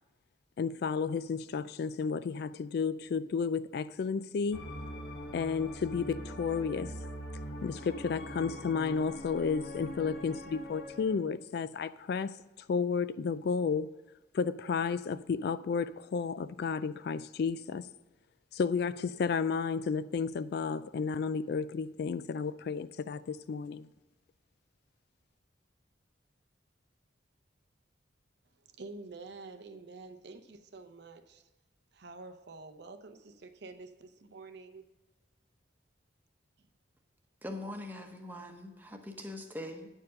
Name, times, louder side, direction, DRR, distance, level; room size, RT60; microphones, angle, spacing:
voice 1, 0.6-4.6 5.3-7.0 7.6-12.4 12.7-13.9 14.3-17.9 18.5-23.9, left 5 dB, 55° left, 0.3 m, -32 dB
sound 1, 4.5-11.1, equal, 75° left, 1.5 m, -43 dB
voice 2, 28.6-31.5 31.9-34.9 36.6-36.7, right 3 dB, 60° right, 0.6 m, -48 dB
voice 3, 37.4-39.9, left 1 dB, 10° right, 0.9 m, -42 dB
9.6 x 4.6 x 6.3 m
head